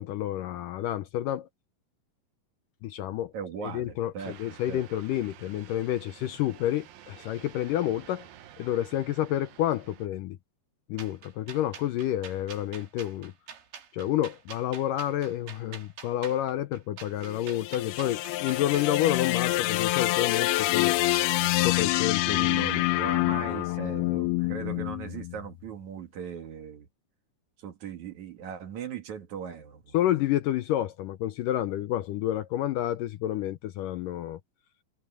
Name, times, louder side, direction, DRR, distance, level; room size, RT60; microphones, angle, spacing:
voice 1, 0.0-1.5 2.8-3.3 3.6-8.3 8.6-10.4 10.9-13.3 13.9-21.0 21.6-22.7 29.9-34.4, left 12 dB, 75° left, 2.1 m, -29 dB
voice 2, 3.3-4.8 22.2-26.9 27.6-30.0, right 7 dB, 55° right, 2.8 m, -39 dB
sound 1, 4.2-10.1, right 10 dB, 70° right, 3.0 m, -51 dB
sound 2, 11.0-18.9, right 8 dB, 85° right, 4.7 m, -46 dB
sound 3, 17.3-25.6, left 18 dB, 90° left, 2.7 m, -27 dB
omnidirectional pair, 4.4 m